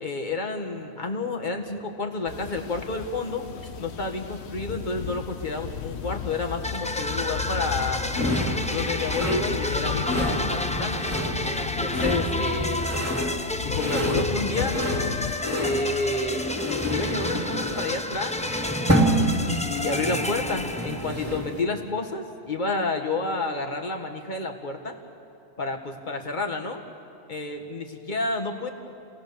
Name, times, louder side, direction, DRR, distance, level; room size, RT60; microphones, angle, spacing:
voice 1, 0.0-3.4 3.8-8.0 8.7-11.1 11.4-12.8 13.6-14.8 15.6-16.5 16.9-18.4 19.3-25.0 25.6-26.8 27.3-28.7, left 3 dB, 45° left, 3 dB, 1.8 m, -30 dB
sound 1, 2.3-15.4, left 8 dB, 80° left, 1.1 m, -35 dB
sound 2, 6.6-21.4, left 1 dB, 10° left, 0.6 m, -31 dB
sound 3, 8.1-21.6, equal, 15° right, 2.4 m, -28 dB
29.0 x 18.0 x 7.0 m, 2.6 s
omnidirectional pair, 1.1 m